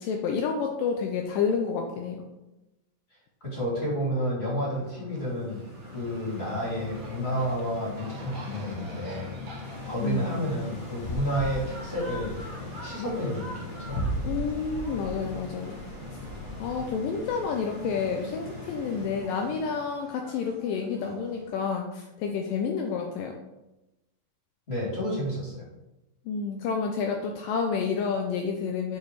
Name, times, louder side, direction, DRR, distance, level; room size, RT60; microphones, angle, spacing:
voice 1, 0.0-2.3 10.0-10.4 14.2-15.7 16.6-23.4 26.3-29.0, left 5 dB, 80° left, 3 dB, 2.1 m, -29 dB
voice 2, 3.4-9.3 9.9-14.1 24.7-25.7, equal, 20° left, -6 dB, 2.6 m, -31 dB
sound 1, 4.7-21.5, right 1 dB, 50° right, 1.9 m, -48 dB
sound 2, 5.4-19.9, left 3 dB, 20° right, 1.3 m, -42 dB
sound 3, 9.6-19.0, right 1 dB, 45° left, 1.7 m, -39 dB
8.0 x 4.9 x 4.7 m, 0.97 s
omnidirectional pair, 4.5 m